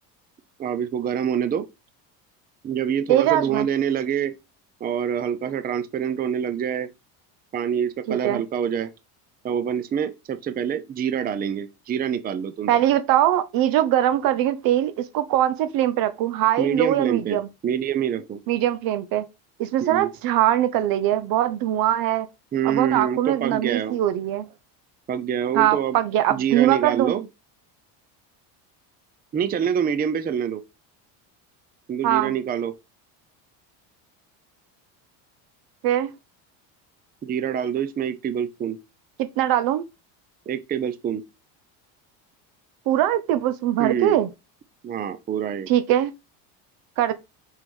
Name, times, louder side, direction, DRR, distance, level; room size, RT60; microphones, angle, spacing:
voice 1, 0.6-1.7 2.6-4.3 4.8-6.9 7.5-8.9 9.4-12.7 16.6-18.4 19.8-20.1 22.5-24.0 25.1-26.0 26.3-27.3 29.3-30.6 31.9-32.7 37.2-38.8 40.5-41.2 43.8-44.2 44.8-45.7, right 8 dB, 20° right, 0.6 m, -26 dB
voice 2, 3.1-3.7 8.1-8.4 12.7-17.5 18.5-19.2 19.6-22.3 22.6-24.5 25.5-27.1 32.0-32.3 35.8-36.1 39.2-39.8 42.9-44.3 45.7-46.1 47.0-47.1, right 12 dB, 55° right, 0.9 m, -21 dB
6.0 x 5.6 x 5.5 m
cardioid pair, 150°, 42 cm